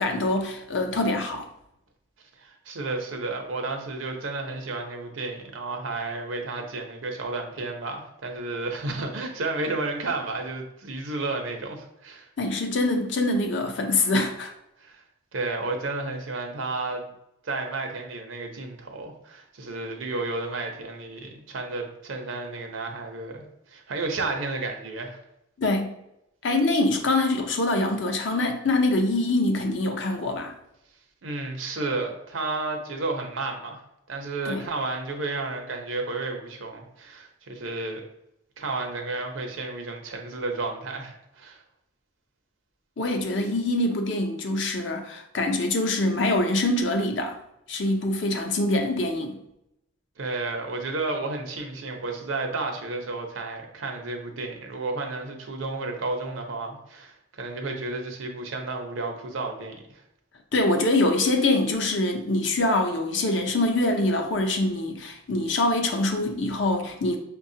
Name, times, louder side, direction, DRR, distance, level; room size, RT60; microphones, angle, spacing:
voice 1, 0.0-1.5 12.4-14.5 25.6-25.9 26.4-30.5 34.5-34.6 43.0-47.4 47.7-49.4 60.5-67.2, left 2 dB, 65° left, 4 dB, 0.6 m, -24 dB
voice 2, 2.4-12.3 14.8-15.0 15.3-17.0 17.4-25.2 31.2-33.8 34.1-38.0 38.6-41.6 50.2-60.0, right 3 dB, 85° right, 3 dB, 0.7 m, -32 dB
5.5 x 2.3 x 2.7 m, 0.82 s
head